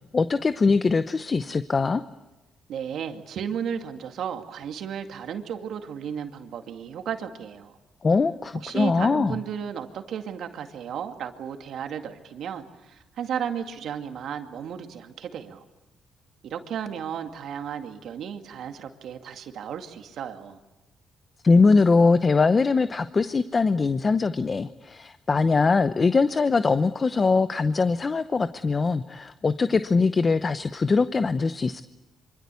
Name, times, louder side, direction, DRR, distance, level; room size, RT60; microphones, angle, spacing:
voice 1, 0.1-2.0 8.0-9.4 21.4-31.8, left 4 dB, 35° left, 11 dB, 0.8 m, -22 dB
voice 2, 2.7-7.8 8.5-15.6 16.4-20.6, right 8 dB, 70° right, 6 dB, 2.2 m, -34 dB
25.5 x 25.0 x 8.4 m, 1.0 s
cardioid pair, 90°, 0 cm